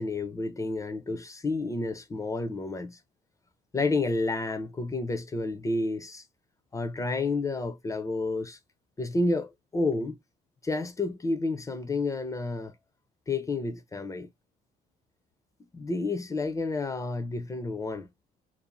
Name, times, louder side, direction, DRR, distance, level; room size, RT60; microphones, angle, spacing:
voice 1, 0.0-3.0 3.7-6.2 6.7-8.6 9.0-10.2 10.6-12.7 13.3-14.3 15.7-18.1, left 3 dB, 20° left, 0.5 m, -30 dB
2.6 x 2.0 x 2.9 m
cardioid pair, 110°, 17 cm